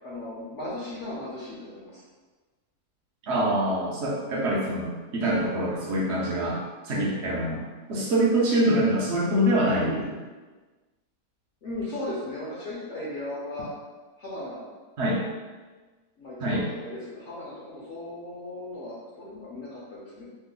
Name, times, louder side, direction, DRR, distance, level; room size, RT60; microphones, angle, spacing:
voice 1, 0.0-2.0 3.6-3.8 4.3-4.5 11.6-13.7 14.2-14.6 16.2-20.2, left 1 dB, 60° left, -7 dB, 0.8 m, -37 dB
voice 2, 3.2-7.6 7.9-10.2 15.0-15.2 16.4-16.7, right 1 dB, 60° right, -4 dB, 0.7 m, -25 dB
3.1 x 2.0 x 3.7 m, 1.3 s
omnidirectional pair, 1.7 m